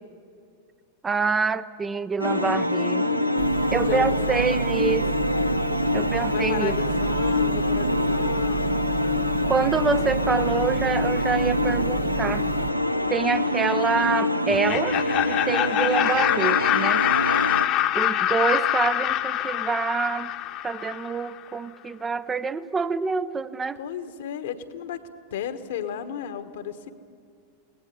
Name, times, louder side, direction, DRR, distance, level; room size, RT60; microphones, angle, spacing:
voice 1, 1.0-3.1 3.7-5.1 5.9-6.8 9.5-12.5 13.1-17.0 17.9-20.3 20.6-23.8, right 5 dB, 15° right, 12 dB, 0.6 m, -26 dB
sound 1, 2.2-17.7, left 1 dB, 90° left, 0.7 m, -25 dB
sound 2, 3.4-12.7, right 6 dB, 60° right, 1.3 m, -31 dB
voice 2, 3.9-4.7 6.3-8.9 23.8-25.0 25.3-26.9, left 8 dB, 60° left, 10 dB, 1.3 m, -34 dB
Laughter, 14.5-21.3, left 12 dB, 40° left, 1.1 m, -25 dB
23.5 x 18.0 x 9.7 m, 2.3 s
figure-of-eight pair, 90°, 0 cm